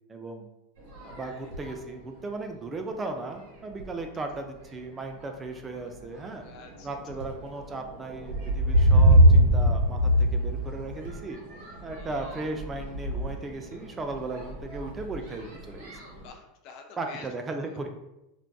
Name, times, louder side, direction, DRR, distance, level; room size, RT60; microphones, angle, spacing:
voice 1, 0.1-0.5 1.0-6.5 6.8-11.4 11.8-16.0 17.0-17.9, right 3 dB, 25° right, 4 dB, 0.3 m, -36 dB
sound 1, 0.8-1.8 2.5-2.6 3.1-3.4 3.7-4.3 5.0-5.2 5.6-16.3, equal, 65° right, 1.1 m, -25 dB
voice 2, 6.4-6.9 12.0-12.4 16.2-17.3 17.7-17.8, left 5 dB, 55° left, 3 dB, 0.4 m, -48 dB
2.5 x 2.2 x 2.3 m, 0.92 s
hypercardioid pair, 105°, 0 cm